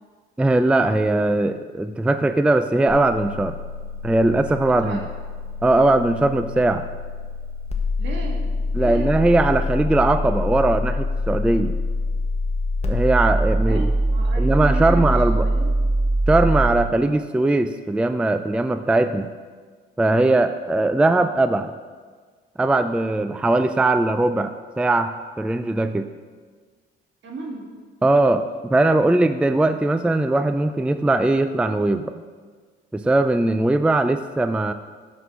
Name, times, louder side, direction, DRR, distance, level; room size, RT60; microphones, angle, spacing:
voice 1, 0.4-3.6 4.0-5.0 5.6-6.9 8.7-11.8 12.8-13.9 14.4-15.5 16.3-19.3 20.0-21.7 22.6-26.1 28.0-32.2 32.9-34.7, right 2 dB, 5° right, 10 dB, 0.3 m, -20 dB
sound 1, 2.9-16.7, equal, 35° left, 1.3 m, -24 dB
voice 2, 8.0-9.1 13.6-15.1 15.4-15.7 27.2-27.6, right 2 dB, 65° right, -1 dB, 2.2 m, -33 dB
7.9 x 6.1 x 6.3 m, 1.5 s
cardioid pair, 90°, 20 cm